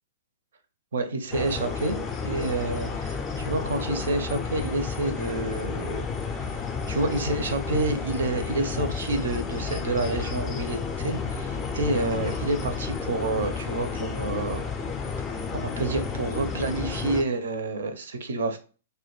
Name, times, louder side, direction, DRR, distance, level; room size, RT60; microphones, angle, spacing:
voice 1, 0.9-14.6 15.5-18.6, right 2 dB, 60° right, 0.4 m, -29 dB
sound 1, 1.3-17.2, left 5 dB, 20° left, 0.4 m, -31 dB
2.2 x 2.1 x 3.0 m
figure-of-eight pair, 110°, 0 cm